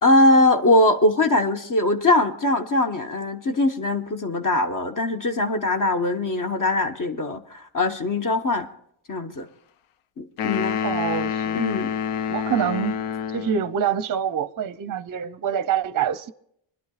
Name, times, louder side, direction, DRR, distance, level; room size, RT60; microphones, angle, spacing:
voice 1, 0.0-8.7 9.1-9.5 10.2-10.8 11.5-11.9, left 2 dB, 40° left, 1.2 m, -21 dB
sound 1, 10.4-13.7, left 8 dB, 85° left, 0.6 m, -27 dB
voice 2, 10.8-11.6 12.3-13.0 13.3-16.3, right 9 dB, 40° right, 0.5 m, -26 dB
25.0 x 11.0 x 2.4 m
cardioid pair, 95°, 50 cm